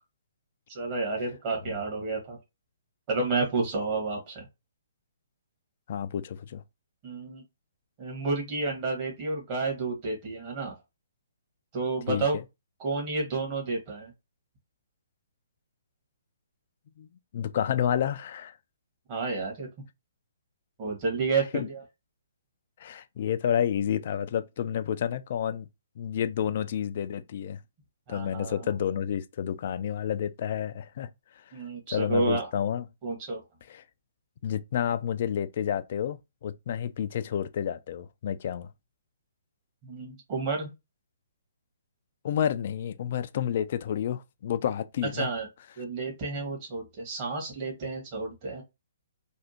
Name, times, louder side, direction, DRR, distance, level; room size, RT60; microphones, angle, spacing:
voice 1, 0.7-2.4 3.1-4.5 7.0-7.4 8.0-10.7 11.7-12.4 12.8-14.1 19.1-19.7 20.8-21.8 28.1-28.7 31.5-32.5 33.0-33.4 39.8-40.7 45.1-45.5 45.8-48.6, right 3 dB, 30° right, 1.6 m, -30 dB
voice 2, 5.9-6.6 12.1-12.3 17.0-17.1 17.3-18.5 21.5-21.7 22.8-25.7 26.0-27.6 28.1-31.1 31.9-32.8 33.7-33.8 34.4-38.7 42.2-45.3, left 9 dB, 45° left, 0.3 m, -30 dB
3.4 x 2.4 x 2.9 m
figure-of-eight pair, 125°, 0 cm